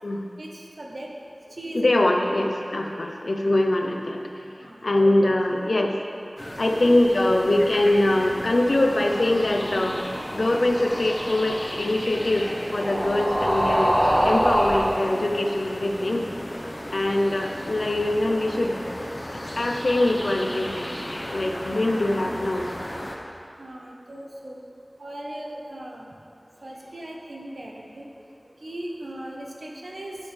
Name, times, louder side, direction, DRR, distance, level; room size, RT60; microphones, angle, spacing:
voice 1, 0.4-1.1 1.6-1.9 2.3-2.5 4.6-5.3 6.7-6.9 13.0-13.2 21.7-21.9 23.6-24.6 25.0-26.2 26.6-28.1 28.6-30.2, right 1 dB, 75° right, -1 dB, 1.3 m, -38 dB
voice 2, 1.7-6.0 6.6-10.0 10.3-16.3 16.9-18.8 19.3-20.9 21.3-22.7, left 1 dB, 90° left, 2 dB, 0.8 m, -23 dB
sound 1, 6.4-23.2, left 1 dB, 45° left, 1.2 m, -36 dB
sound 2, 8.3-15.0, equal, 5° right, 0.9 m, -26 dB
12.0 x 9.3 x 3.5 m, 2.5 s
wide cardioid pair, 45°, 0 cm